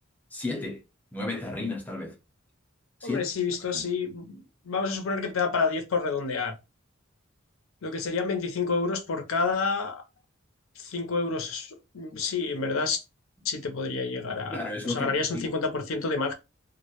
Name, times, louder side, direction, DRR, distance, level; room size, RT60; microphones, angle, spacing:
voice 1, 0.3-0.8 1.1-2.1 3.0-3.2 3.7-3.8 14.5-15.5, left 2 dB, 10° left, 0.5 m, -33 dB
voice 2, 3.0-6.6 7.8-10.0 10.8-13.0 13.4-16.3, left 4 dB, 80° left, 0.6 m, -29 dB
2.1 x 2.1 x 2.8 m
head